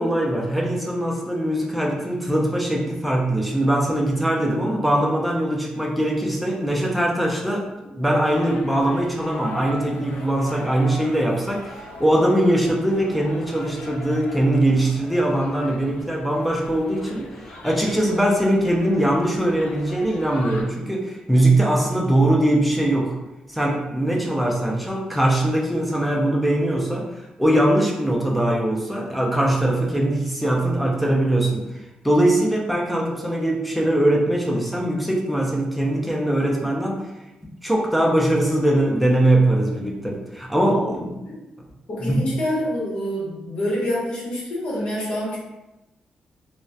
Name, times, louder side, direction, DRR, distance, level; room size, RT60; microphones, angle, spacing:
voice 1, 0.0-23.1 23.5-27.1 27.4-31.6 32.0-37.0 37.6-41.1 42.0-42.3, right 1 dB, ahead, -2 dB, 0.4 m, -21 dB
sound 1, 8.3-20.6, left 2 dB, 90° left, 0.4 m, -40 dB
voice 2, 40.7-41.5 41.9-45.4, left 1 dB, 50° left, -6 dB, 0.9 m, -27 dB
2.6 x 2.0 x 2.3 m, 0.98 s
wide cardioid pair, 165°, 2 cm